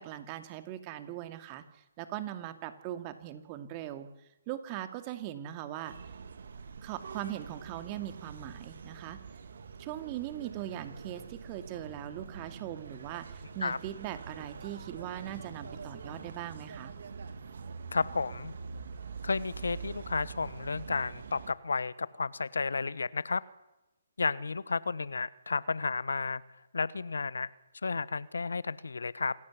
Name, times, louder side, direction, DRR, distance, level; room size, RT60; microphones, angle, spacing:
voice 1, 0.0-1.6 2.0-4.1 4.5-5.9 6.8-9.2 9.8-16.9, right 12 dB, 30° right, 9 dB, 2.5 m, -40 dB
sound 1, 5.9-21.5, right 5 dB, 65° right, 2.4 m, -45 dB
voice 2, 17.9-18.5 19.2-23.4 24.2-26.4 26.7-27.5 27.8-29.3, left 4 dB, 80° left, 19 dB, 1.2 m, -32 dB
27.0 x 14.5 x 9.8 m, 0.94 s
figure-of-eight pair, 140°, 0 cm